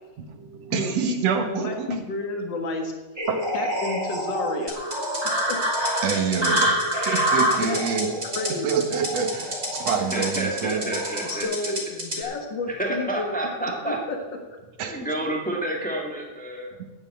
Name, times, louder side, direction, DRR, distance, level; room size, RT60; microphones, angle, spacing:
voice 1, 0.2-2.0 3.3-3.5 6.0-11.0 14.8-14.9, right 6 dB, 60° right, 6 dB, 2.2 m, -27 dB
voice 2, 0.7-2.9 3.5-4.8 5.2-5.6 7.6-7.8 8.3-8.7 11.3-13.3 13.9-14.2, left 3 dB, 45° left, 4 dB, 1.8 m, -31 dB
sound 1, 3.2-11.4, equal, 10° right, 2.2 m, -27 dB
sound 2, 4.7-12.2, equal, 25° right, 3.0 m, -32 dB
voice 3, 10.1-11.7 12.2-12.3 12.7-14.0 14.8-16.8, right 1 dB, 10° left, 0 dB, 0.5 m, -29 dB
9.3 x 8.9 x 8.5 m, 1.2 s
omnidirectional pair, 3.6 m